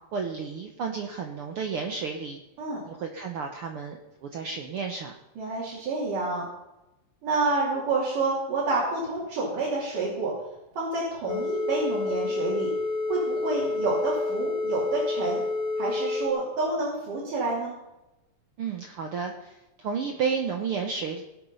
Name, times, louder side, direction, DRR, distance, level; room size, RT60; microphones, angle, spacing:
voice 1, 0.1-2.4 2.8-5.1 18.6-21.2, right 5 dB, 65° right, 3 dB, 1.4 m, -32 dB
voice 2, 5.4-6.5 7.2-10.4 10.8-12.7 13.1-15.4 15.8-17.8, right 3 dB, 80° right, -6 dB, 4.6 m, -28 dB
sound 1, 11.3-16.3, left 3 dB, 50° left, 1.8 m, -29 dB
18.5 x 8.2 x 5.6 m, 0.97 s
omnidirectional pair, 3.7 m